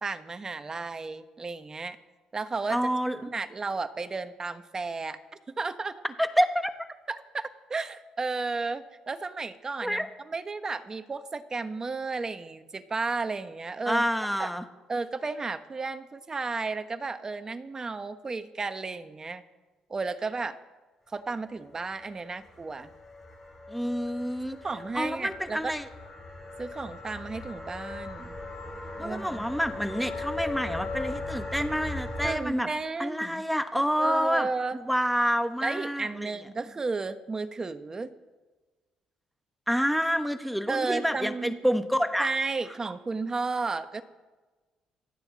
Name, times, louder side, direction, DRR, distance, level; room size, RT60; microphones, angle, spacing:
voice 1, 0.0-2.0 2.3-2.8 3.2-5.2 5.5-6.0 7.1-7.4 7.7-14.0 14.4-14.5 14.9-19.4 19.9-20.6 21.1-22.9 24.6-25.7 26.6-28.3 29.0-29.5 32.2-33.4 34.0-34.8 35.6-38.1 40.7-41.6 42.2-44.0, right 4 dB, 30° right, 11 dB, 1.1 m, -33 dB
voice 2, 2.7-3.3 6.2-6.7 9.8-10.1 13.9-14.6 23.7-24.6 24.9-25.9 29.0-32.7 33.0-34.5 34.7-36.3 39.7-42.3, equal, ahead, 9 dB, 1.3 m, -28 dB
sound 1, 21.8-32.3, left 2 dB, 20° left, 6.4 m, -39 dB
27.0 x 9.3 x 4.1 m, 1.3 s
supercardioid pair, 75°, 2 cm